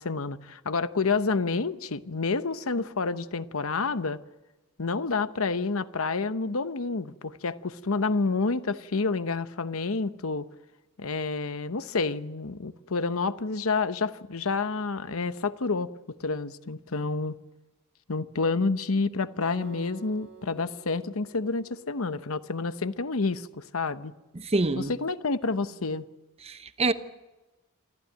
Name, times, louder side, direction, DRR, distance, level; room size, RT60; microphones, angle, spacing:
voice 1, 0.0-4.2 4.8-10.5 11.0-15.9 16.2-17.4 18.1-24.1 24.8-26.0, left 4 dB, 70° left, 0.9 m, -29 dB
Acoustic guitar, 19.4-22.7, right 6 dB, 55° right, 1.9 m, -50 dB
voice 2, 24.3-24.9 26.4-26.9, right 2 dB, 30° right, 1.0 m, -26 dB
26.0 x 15.0 x 9.2 m
head